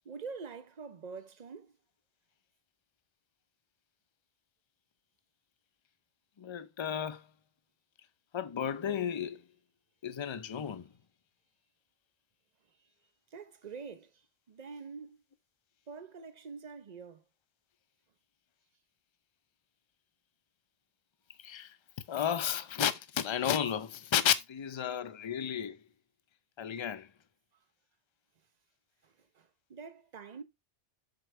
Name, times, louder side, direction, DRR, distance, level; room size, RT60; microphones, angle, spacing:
voice 1, 0.1-1.7 13.3-14.1 14.5-15.2 15.9-17.2 29.7-30.4, right 5 dB, 40° right, 0.8 m, -45 dB
voice 2, 6.4-7.3 8.3-9.4 10.0-10.9 21.4-21.8 22.1-25.8 26.6-27.1, left 9 dB, 35° left, 0.5 m, -33 dB
7.7 x 6.9 x 3.2 m
omnidirectional pair, 1.2 m